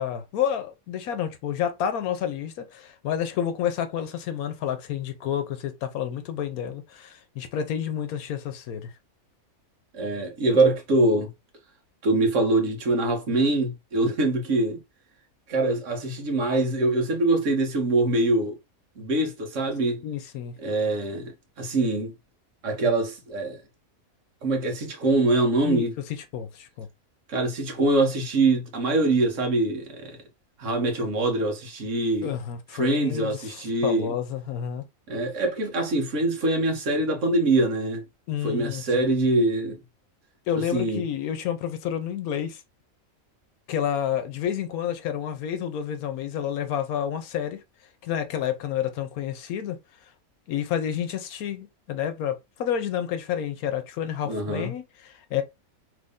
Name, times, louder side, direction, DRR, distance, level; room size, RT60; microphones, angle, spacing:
voice 1, 0.0-8.9 20.0-20.6 25.6-26.9 32.2-34.8 38.3-39.0 40.5-42.6 43.7-47.6 48.0-49.8 50.5-55.4, left 9 dB, 85° left, 1.1 m, -29 dB
voice 2, 9.9-11.3 12.0-14.8 15.5-18.5 19.0-20.0 20.6-22.1 22.6-23.6 24.4-25.9 27.3-30.2 30.6-32.3 32.7-34.1 35.1-38.0 38.4-39.8 40.7-41.0 54.2-54.7, right 2 dB, 60° right, 1.3 m, -24 dB
3.2 x 2.6 x 3.5 m
omnidirectional pair, 1.5 m